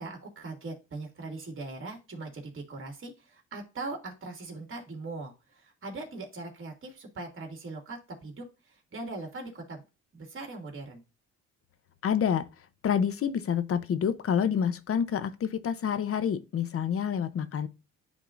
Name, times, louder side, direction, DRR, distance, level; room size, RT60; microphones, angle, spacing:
voice 1, 0.0-9.8 10.1-11.0, right 3 dB, 45° right, 2.4 m, -40 dB
voice 2, 12.0-12.5 12.8-17.7, left 8 dB, 50° left, 0.7 m, -28 dB
10.0 x 3.7 x 2.5 m
cardioid pair, 90°, 30 cm